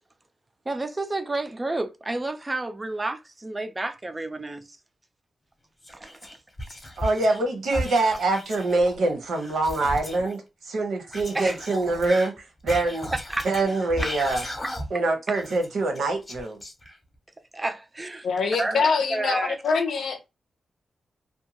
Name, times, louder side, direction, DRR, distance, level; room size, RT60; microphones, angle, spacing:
voice 1, 0.7-4.8 5.9-6.4 11.3-11.6 13.1-13.7 14.0-14.1 17.5-18.3 18.6-19.6, right 2 dB, 20° right, 0.4 m, -30 dB
Whispering, 5.8-7.4 7.7-10.3 11.1-15.1 15.3-17.2, equal, 20° left, 0.7 m, -36 dB
voice 2, 7.0-13.1 13.4-14.4 14.9-16.6, right 2 dB, 80° right, 0.9 m, -25 dB
voice 3, 18.2-20.3, left 5 dB, 80° left, 0.6 m, -24 dB
2.6 x 2.3 x 2.7 m
wide cardioid pair, 145°, 0 cm